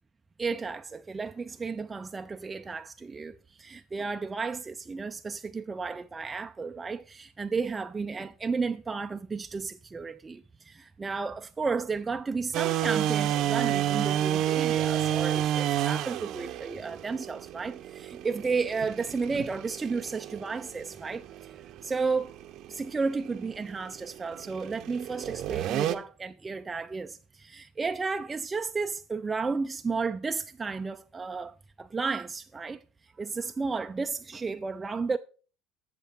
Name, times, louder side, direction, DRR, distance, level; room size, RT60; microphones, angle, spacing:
voice 1, 0.4-22.3 22.7-32.8 33.1-35.2, right 4 dB, 20° right, 0.4 m, -33 dB
sound 1, 12.5-26.0, right 11 dB, 55° right, 0.7 m, -30 dB
8.1 x 6.8 x 4.3 m
hypercardioid pair, 80°, 0 cm